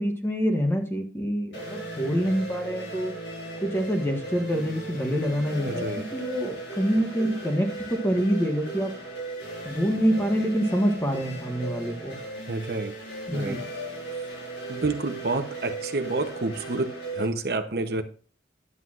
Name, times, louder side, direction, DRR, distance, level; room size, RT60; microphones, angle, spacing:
voice 1, 0.0-3.1 3.6-5.9 6.1-8.9 9.6-12.2 13.3-13.7, equal, 15° left, 3 dB, 1.4 m, -26 dB
sound 1, 1.5-17.3, right 2 dB, 80° left, 4.3 m, -37 dB
voice 2, 5.6-6.0 12.5-13.0 13.3-13.6 14.1-14.2 14.7-18.0, right 3 dB, 60° right, 9 dB, 0.8 m, -29 dB
11.0 x 8.0 x 2.5 m, 0.40 s
head